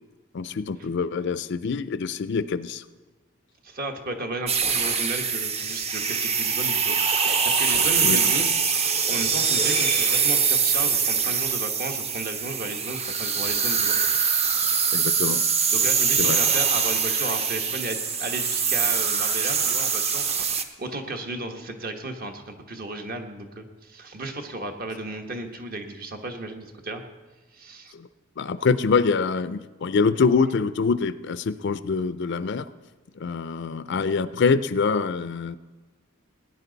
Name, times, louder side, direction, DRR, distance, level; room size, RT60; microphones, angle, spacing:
voice 1, 0.3-2.8 8.0-8.2 14.9-15.4 16.2-16.4 27.9-28.1 28.4-32.7 33.2-35.6, left 5 dB, 60° left, 15 dB, 0.4 m, -25 dB
voice 2, 3.6-8.7 9.1-14.0 15.7-20.2 20.8-27.0 27.5-27.9, right 2 dB, 45° right, 5 dB, 1.2 m, -34 dB
sound 1, 4.5-20.6, right 6 dB, 30° right, 0.7 m, -23 dB
18.0 x 9.8 x 4.0 m, 1.3 s
head